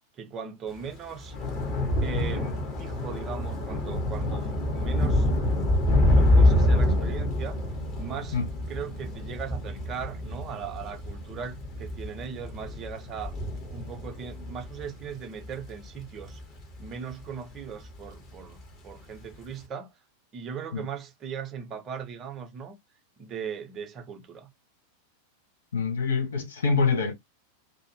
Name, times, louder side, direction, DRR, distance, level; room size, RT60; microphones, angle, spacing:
voice 1, 0.2-1.4 2.0-5.4 6.1-7.6 8.0-8.4 8.7-13.4 13.7-16.4 16.8-19.9 20.3-22.8 23.2-24.5, right 7 dB, 30° right, 0.7 m, -38 dB
Thunder / Rain, 0.8-17.4 17.7-18.2 18.4-18.6, left 1 dB, 35° left, 1.1 m, -26 dB
voice 2, 25.7-27.1, left 5 dB, 65° left, 0.8 m, -25 dB
2.5 x 2.4 x 2.6 m
figure-of-eight pair, 90°, 0 cm